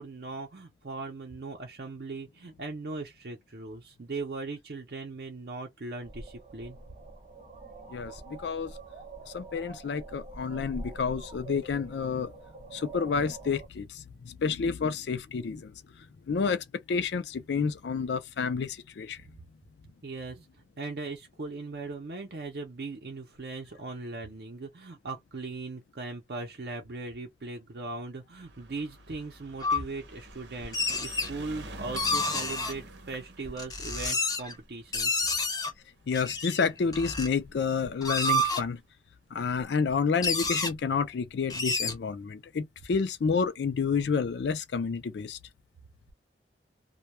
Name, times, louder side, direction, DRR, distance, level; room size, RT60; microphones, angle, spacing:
voice 1, 0.0-6.8 20.0-20.5 20.8-35.3, right 3 dB, 60° right, 0.6 m, -39 dB
sound 1, 6.0-13.7, right 2 dB, 35° right, 0.9 m, -45 dB
voice 2, 7.9-8.7 9.3-12.3 12.7-15.7 16.3-19.2 36.1-38.8 39.3-45.4, left 5 dB, 75° left, 0.4 m, -29 dB
sound 2, 28.4-36.8 37.7-37.8 38.0-38.1 38.3-38.4, right 2 dB, 90° right, 0.8 m, -47 dB
sound 3, 29.6-29.8 30.6-31.3 32.0-32.7 33.5-34.5 34.9-35.7 36.1-37.3 37.8-38.6 39.6-39.7 39.9-40.0 40.2-40.7 41.5-41.9, left 2 dB, 20° left, 0.6 m, -29 dB
2.2 x 2.2 x 2.9 m
head